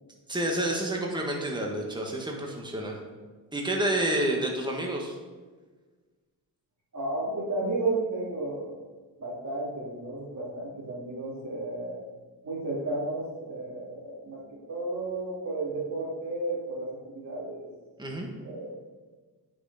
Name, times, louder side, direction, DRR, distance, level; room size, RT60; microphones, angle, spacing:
voice 1, 0.3-3.0 3.5-5.1 18.0-18.3, right 1 dB, 10° right, 0 dB, 1.8 m, -29 dB
voice 2, 6.9-8.9 9.2-12.0 12.4-14.4 14.7-17.7 18.4-18.7, right 2 dB, 45° right, -5 dB, 3.0 m, -33 dB
9.5 x 6.1 x 4.3 m, 1.4 s
cardioid pair, 75°, 40 cm